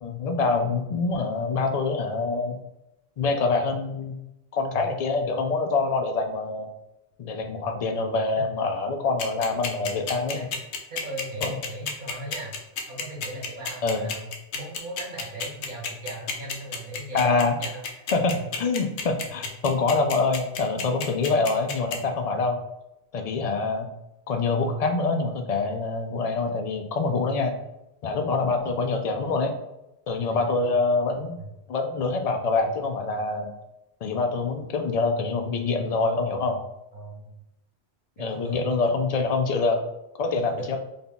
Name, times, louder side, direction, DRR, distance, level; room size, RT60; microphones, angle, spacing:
voice 1, 0.0-2.6 3.2-4.2 4.5-6.7 7.2-10.5 11.4-11.5 13.8-14.1 17.1-17.6 18.1-18.3 18.6-22.6 23.1-23.9 24.3-27.5 28.0-29.6 30.1-31.4 31.7-33.5 34.0-36.6 38.2-39.8 40.2-40.8, left 3 dB, 55° left, 4 dB, 0.4 m, -25 dB
sound 1, 9.2-22.0, left 5 dB, 80° left, 0.9 m, -30 dB
voice 2, 10.9-12.5 12.9-18.4 18.9-19.1 22.3-22.5 28.1-28.3 30.2-30.8 31.4-31.5 36.9-37.3 38.2-38.8 40.2-40.8, right 1 dB, 50° right, -2 dB, 1.4 m, -38 dB
3.6 x 2.3 x 3.8 m, 0.89 s
omnidirectional pair, 1.1 m